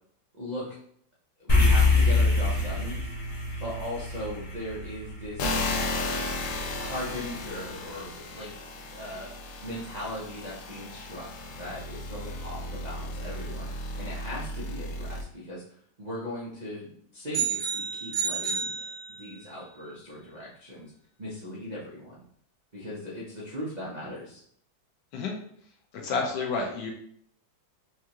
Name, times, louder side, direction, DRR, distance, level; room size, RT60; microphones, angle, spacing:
voice 1, 0.3-0.8 1.4-3.0 3.6-5.7 6.8-8.5 8.9-9.3 9.6-11.3 11.6-13.7 13.9-15.6 16.0-18.7 19.1-20.9 21.2-22.2 22.7-24.4, left 1 dB, 65° right, -7 dB, 0.4 m, -38 dB
sound 1, 1.5-6.0, left 3 dB, 35° left, 0.5 m, -24 dB
sound 2, 5.4-15.2, left 2 dB, 90° left, 0.7 m, -34 dB
sound 3, 17.3-19.5, right 6 dB, 90° right, 1.8 m, -31 dB
voice 2, 26.0-26.9, left 4 dB, 70° left, 1 dB, 1.3 m, -29 dB
4.6 x 2.4 x 2.9 m, 0.65 s
omnidirectional pair, 2.1 m